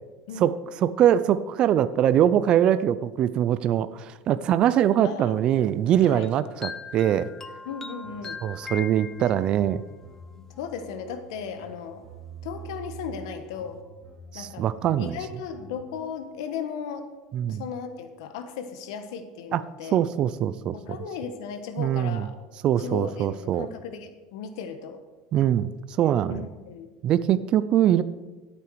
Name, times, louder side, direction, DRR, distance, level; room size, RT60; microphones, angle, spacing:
voice 1, 0.4-7.3 8.4-9.8 14.3-15.2 17.3-17.6 19.5-19.6 19.9-20.8 21.8-22.3 22.6-23.7 25.3-25.7 26.0-26.4 27.0-28.0, right 10 dB, 40° right, 14 dB, 0.4 m, -22 dB
voice 2, 5.0-5.3 6.0-6.3 7.6-8.4 9.2-9.4 10.6-12.1 12.4-13.8 14.3-14.7 15.0-17.1 17.5-20.0 20.7-22.3 22.8-25.0 26.3-26.9, left 6 dB, 85° left, 8 dB, 1.3 m, -36 dB
sound 1, 6.2-9.7, left 5 dB, 15° left, 0.6 m, -40 dB
sound 2, 8.0-15.9, right 4 dB, 10° right, 3.2 m, -46 dB
12.5 x 8.4 x 4.8 m, 1.2 s
supercardioid pair, 145°, 2 cm